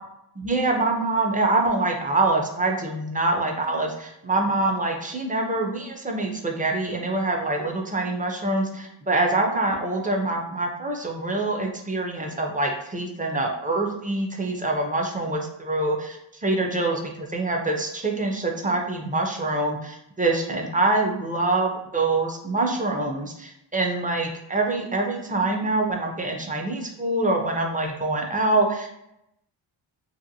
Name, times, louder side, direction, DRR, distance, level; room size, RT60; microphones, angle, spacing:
voice 1, 0.4-28.9, right 2 dB, 20° right, 1 dB, 0.3 m, -25 dB
2.7 x 2.5 x 2.6 m, 0.82 s
wide cardioid pair, 100°, 48 cm